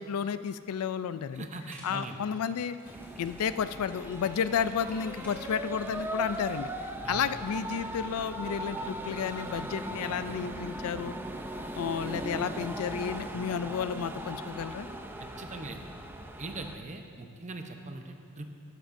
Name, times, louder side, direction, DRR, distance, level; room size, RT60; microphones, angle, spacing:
voice 1, 0.0-1.5 1.8-2.8 3.2-11.1 11.7-14.9, left 7 dB, 75° left, 13 dB, 0.4 m, -32 dB
voice 2, 1.3-2.2 7.0-7.3 15.2-15.9 16.4-18.6, right 2 dB, 35° right, 5 dB, 0.8 m, -41 dB
sound 1, 1.7-9.7, equal, 5° left, 2.5 m, -56 dB
sound 2, 2.8-16.8, right 1 dB, 10° right, 0.4 m, -38 dB
13.0 x 12.5 x 2.6 m, 2.4 s
head